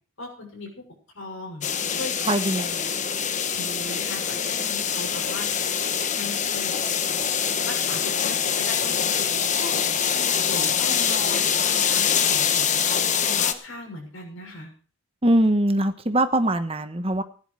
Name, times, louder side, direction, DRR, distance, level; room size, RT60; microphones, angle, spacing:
voice 1, 0.2-0.9 1.1-1.7 2.0-2.3 3.5-5.5 6.1-6.8 7.7-9.8 10.1-12.8 13.2-14.7, left 2 dB, 75° left, 1 dB, 6.5 m, -38 dB
sound 1, 1.6-13.5, left 7 dB, 35° left, 1.1 m, -24 dB
voice 2, 2.2-2.9 15.2-17.2, right 1 dB, 25° right, 9 dB, 1.1 m, -22 dB
16.0 x 10.5 x 4.8 m, 0.42 s
head